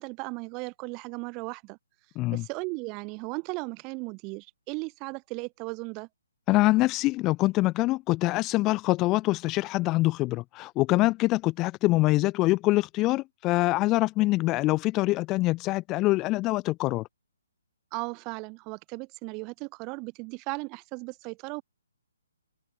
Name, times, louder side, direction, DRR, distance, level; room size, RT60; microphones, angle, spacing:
voice 1, 0.0-1.8 2.3-6.1 17.9-21.6, right 29 dB, 25° right, 2.2 m, -36 dB
voice 2, 6.5-17.1, left 19 dB, 20° left, 0.5 m, -24 dB
figure-of-eight pair, 135°, 0 cm